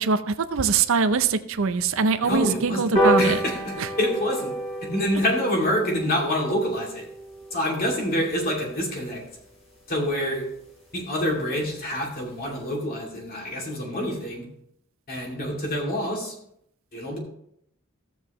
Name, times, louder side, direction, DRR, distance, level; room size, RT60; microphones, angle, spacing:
voice 1, 0.0-3.4 3.8-3.9, right 5 dB, 60° right, 10 dB, 0.5 m, -23 dB
voice 2, 2.2-2.9 3.2-4.5 4.8-7.1 7.5-9.2 9.9-10.4 10.9-14.5 15.1-16.3 16.9-17.2, equal, 40° left, -1 dB, 2.5 m, -26 dB
sound 1, 2.9-9.7 10.1-10.2 10.5-10.6 10.9-11.0 11.3-11.4 11.7-12.0 12.4-12.5, right 1 dB, 25° left, 3.9 m, -29 dB
13.5 x 7.9 x 3.1 m, 0.72 s
head